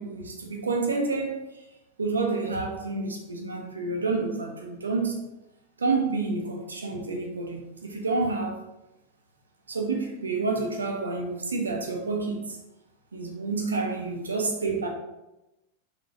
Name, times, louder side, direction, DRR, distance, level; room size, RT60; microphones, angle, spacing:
voice 1, 0.0-1.4 2.0-5.3 5.8-8.6 9.7-12.6 13.1-14.9, right 3 dB, 85° right, 2 dB, 1.1 m, -29 dB
6.3 x 5.4 x 2.9 m, 0.95 s
hypercardioid pair, 95°, 0 cm